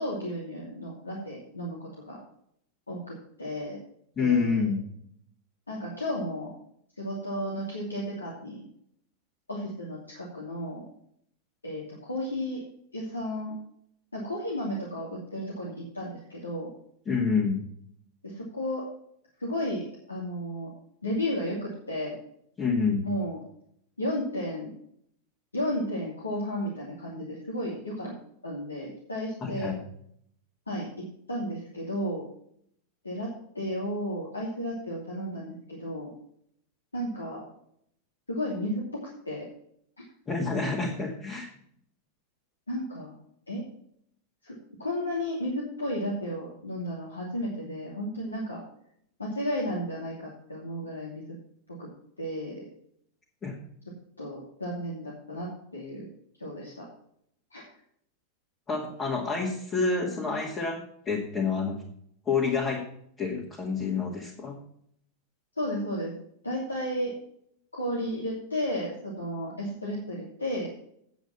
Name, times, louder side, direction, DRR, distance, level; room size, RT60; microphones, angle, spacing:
voice 1, 0.0-2.2 2.9-3.8 4.2-4.7 5.7-6.5 7.0-8.6 9.5-10.8 11.6-12.6 12.9-13.5 14.1-16.7 18.2-18.8 19.4-20.7 21.0-22.2 23.0-23.4 24.0-24.7 25.5-28.1 28.4-29.7 30.7-30.9 31.3-32.2 33.0-33.3 33.5-36.1 36.9-37.4 38.3-39.5 42.7-43.1 43.5-43.6 44.4-48.6 49.2-51.2 51.8-51.9 52.2-52.6 54.2-56.1 56.4-56.9 57.5-57.6 65.6-66.1 66.4-67.1 67.7-70.7, equal, 80° left, -4 dB, 2.7 m, -33 dB
voice 2, 4.2-4.8 17.1-17.6 22.6-23.1 29.4-29.8 40.3-41.5 53.4-53.5 58.7-61.8 62.3-62.8 63.2-64.6, left 4 dB, 20° left, -1 dB, 2.0 m, -28 dB
9.0 x 8.0 x 5.7 m, 0.67 s
figure-of-eight pair, 90°, 0 cm